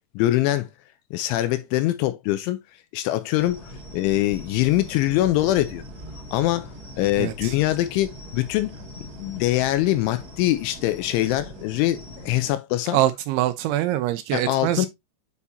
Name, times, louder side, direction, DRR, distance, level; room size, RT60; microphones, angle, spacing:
voice 1, 0.2-0.7 1.1-2.6 2.9-3.6 3.9-5.8 6.3-6.7 7.0-8.8 9.2-13.0 14.3-14.9, left 15 dB, 85° left, 2.9 m, -23 dB
sound 1, 3.4-12.5, left 1 dB, 40° right, 1.4 m, -41 dB
voice 2, 7.2-7.5 12.9-14.9, right 14 dB, 85° right, 2.8 m, -24 dB
8.3 x 4.6 x 2.7 m
omnidirectional pair, 5.7 m